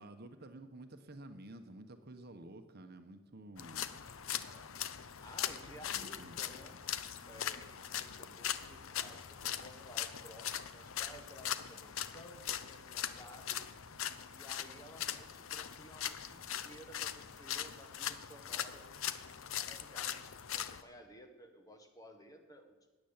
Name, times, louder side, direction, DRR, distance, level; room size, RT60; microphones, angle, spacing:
voice 1, 0.0-3.9 5.8-6.4, right 1 dB, 50° right, 7 dB, 1.0 m, -51 dB
sound 1, 3.6-20.8, left 10 dB, 70° left, 0.7 m, -41 dB
voice 2, 4.3-6.9 7.2-13.6 14.3-22.8, equal, 15° left, 5 dB, 1.4 m, -55 dB
12.5 x 9.1 x 8.8 m, 1.2 s
head